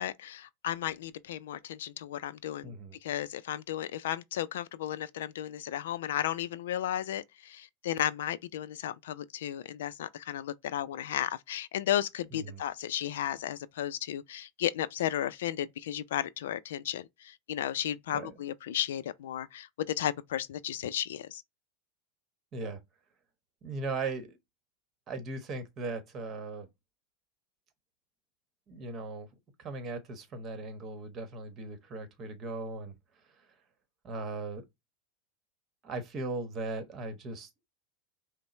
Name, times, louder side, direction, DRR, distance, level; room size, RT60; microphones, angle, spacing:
voice 1, 0.0-2.7 3.0-21.4, left 11 dB, 85° left, 0.3 m, -34 dB
voice 2, 2.6-3.0 12.3-12.6 18.1-18.3 22.5-22.8 23.6-24.4 25.1-26.7 28.7-29.3 29.6-32.9 34.0-34.6 35.8-37.5, right 3 dB, 35° right, 1.1 m, -38 dB
5.3 x 2.0 x 3.1 m
supercardioid pair, 125°, 0 cm